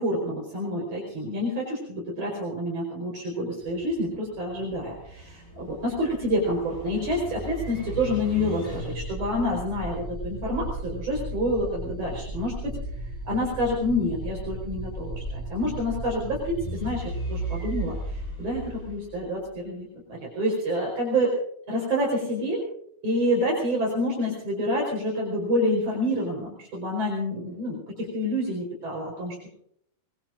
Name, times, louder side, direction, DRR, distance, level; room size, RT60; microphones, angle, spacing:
voice 1, 0.0-21.3 21.7-22.6 23.0-29.5, equal, 55° right, -3 dB, 5.8 m, -28 dB
sound 1, 3.6-19.6, right 1 dB, 10° left, 7.8 m, -36 dB
24.0 x 22.5 x 2.6 m, 0.70 s
omnidirectional pair, 3.6 m